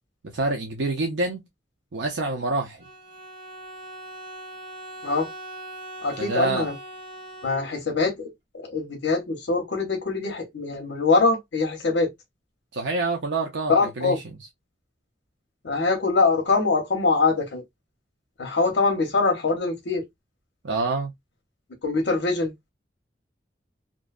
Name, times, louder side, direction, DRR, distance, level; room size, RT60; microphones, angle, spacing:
voice 1, 0.2-1.4 1.9-2.8 6.2-6.7 12.7-14.4 20.6-21.1, right 3 dB, 90° right, 0.6 m, -27 dB
Bowed string instrument, 2.8-8.1, right 1 dB, 30° right, 0.7 m, -41 dB
voice 2, 6.0-6.8 7.4-8.3 8.5-12.1 13.7-14.2 15.6-17.6 18.4-20.0 21.8-22.5, left 3 dB, 80° left, 0.7 m, -23 dB
2.6 x 2.2 x 2.3 m
head